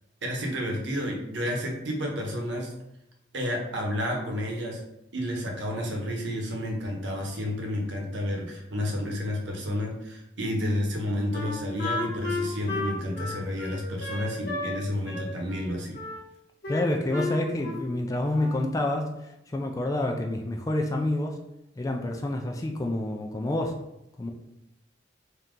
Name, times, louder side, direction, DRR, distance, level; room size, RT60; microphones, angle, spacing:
voice 1, 0.2-2.7 3.3-4.8 5.1-16.0, left 1 dB, 70° right, 0 dB, 0.9 m, -30 dB
Wind instrument woodwind instrument, 11.3-14.8 15.0-16.2 16.6-17.9 18.2-18.7, left 2 dB, 55° left, 1.0 m, -33 dB
voice 2, 16.7-21.4 21.8-23.8 24.2-24.3, left 1 dB, 20° left, 3 dB, 0.3 m, -28 dB
3.7 x 2.8 x 3.6 m, 0.86 s
head